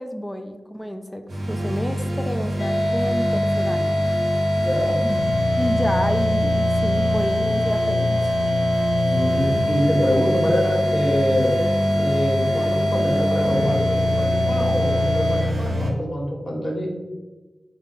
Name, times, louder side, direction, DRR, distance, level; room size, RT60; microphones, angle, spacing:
voice 1, 0.0-4.0 5.0-5.2 5.5-8.5, equal, 10° left, 7 dB, 0.3 m, -30 dB
sound 1, 1.3-15.9, equal, 85° right, 0.6 m, -25 dB
sound 2, 2.6-15.4, left 1 dB, 80° left, 0.7 m, -24 dB
voice 2, 4.6-5.0 9.1-11.6 12.0-16.9, equal, 30° left, -2 dB, 1.1 m, -25 dB
4.0 x 2.2 x 3.7 m, 1.2 s
cardioid pair, 55°, 0 cm